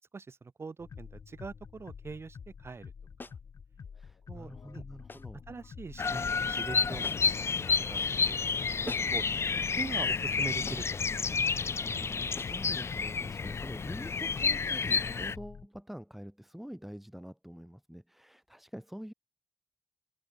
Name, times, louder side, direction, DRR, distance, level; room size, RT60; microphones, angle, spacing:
voice 1, 0.1-2.9 3.2-3.3 4.3-4.8 5.5-8.4 8.8-11.4, right 4 dB, 50° right, 2.8 m, -43 dB
sound 1, 0.8-15.7, left 6 dB, 80° left, 5.4 m, -48 dB
sound 2, 3.2-3.5 5.1-5.4 7.0-7.5 8.9-9.3 10.7-11.0 12.4-12.7, left 3 dB, 40° left, 1.9 m, -46 dB
voice 2, 3.9-5.4 11.8-19.1, equal, 5° right, 3.7 m, -46 dB
Bird vocalization bird call bird song, 6.0-15.3, left 5 dB, 55° left, 0.6 m, -30 dB
open air
wide cardioid pair, 90°, 5 cm